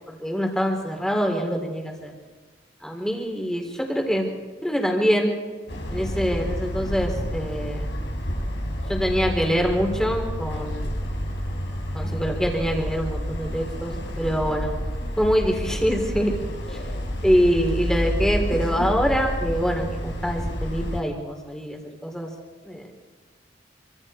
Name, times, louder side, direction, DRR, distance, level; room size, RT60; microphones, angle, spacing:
voice 1, 0.2-2.1 2.8-4.3 4.6-5.4 5.9-7.9 8.9-11.0 11.9-14.8 15.2-16.4 16.7-16.8 17.2-22.3 22.6-22.9, equal, 5° left, 2 dB, 3.9 m, -24 dB
sound 1, 5.7-21.0, equal, 70° left, 5.4 m, -29 dB
27.0 x 25.5 x 4.6 m, 1.4 s
head